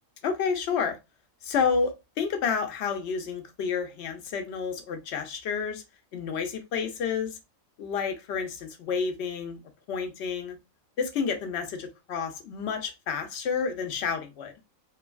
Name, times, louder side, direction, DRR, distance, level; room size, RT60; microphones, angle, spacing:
voice 1, 0.2-1.0 1.4-5.8 6.1-7.4 7.8-9.6 9.9-10.6 11.0-14.5, left 6 dB, 65° left, 0.7 m, -30 dB
3.1 x 2.2 x 2.3 m
omnidirectional pair, 1.4 m